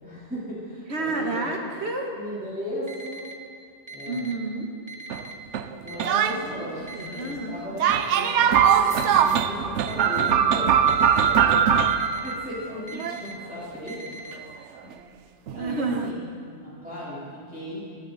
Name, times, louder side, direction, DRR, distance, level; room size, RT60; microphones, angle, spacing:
voice 1, 0.0-1.5 2.1-3.2 3.9-4.2 5.8-10.8 11.1-14.4 14.8-14.9 15.5-17.8, left 1 dB, 5° right, -10 dB, 4.0 m, -37 dB
voice 2, 0.9-2.1 4.1-4.7 6.1-6.7 6.9-7.6 15.5-16.1, right 2 dB, 65° right, 2 dB, 1.8 m, -30 dB
Alarm, 2.9-3.3 3.9-4.3 4.9-5.3 5.9-6.3 6.9-7.3 7.9-8.3 8.9-9.3 9.9-10.3 10.9-11.3 11.9-12.3 12.9-13.3 13.9-14.3, right 3 dB, 25° right, 1.2 m, -40 dB
sound 1, 5.1-5.2 5.5-6.9 7.8-13.2 14.9-15.0 15.5-16.1, right 8 dB, 80° right, 0.9 m, -21 dB
18.5 x 11.5 x 4.2 m, 2.3 s
omnidirectional pair, 1.2 m